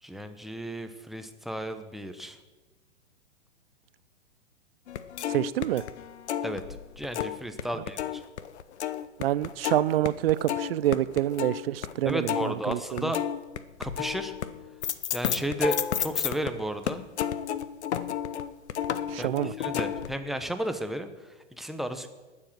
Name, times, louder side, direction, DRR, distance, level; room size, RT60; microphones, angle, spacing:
voice 1, 0.0-2.4 6.4-6.6 7.0-8.2 12.0-13.2 13.8-14.3 15.1-17.0 19.2-22.1, right 1 dB, ahead, 0.9 m, -33 dB
sound 1, 4.9-7.6 7.9-16.5 16.9-20.2, left 10 dB, 65° left, 0.9 m, -32 dB
voice 2, 5.3-5.8 9.2-12.3 12.7-13.1 19.1-19.5, right 13 dB, 55° right, 0.6 m, -27 dB
20.0 x 7.7 x 6.2 m
hypercardioid pair, 115°, 36 cm